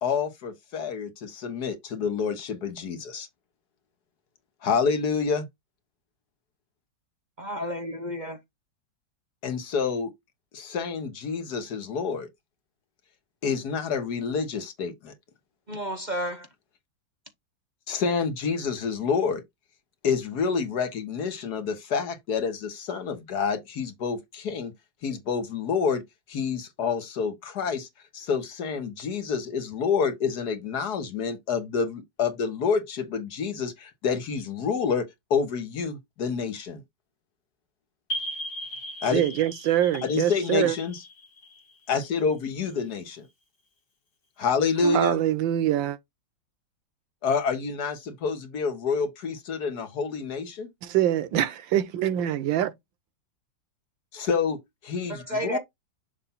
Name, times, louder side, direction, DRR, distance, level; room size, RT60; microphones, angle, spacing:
voice 1, 0.0-3.3 4.6-5.5 9.4-10.1 10.5-12.3 13.4-15.1 17.9-19.4 20.0-24.7 25.0-26.0 26.3-27.9 28.1-35.0 35.3-36.8 39.0-39.2 40.0-41.0 41.9-43.3 44.4-45.2 47.2-50.7 54.1-54.6 54.8-55.2 55.5-55.6, left 5 dB, 60° left, 1.6 m, -28 dB
voice 2, 7.4-8.4 15.7-16.5 55.1-55.6, equal, 35° right, 0.8 m, -31 dB
sound 1, 38.1-42.5, right 1 dB, 45° left, 1.7 m, -38 dB
voice 3, 39.1-40.8 44.8-46.0 50.8-52.7, right 12 dB, 85° right, 1.5 m, -24 dB
7.0 x 2.5 x 5.5 m
omnidirectional pair, 2.0 m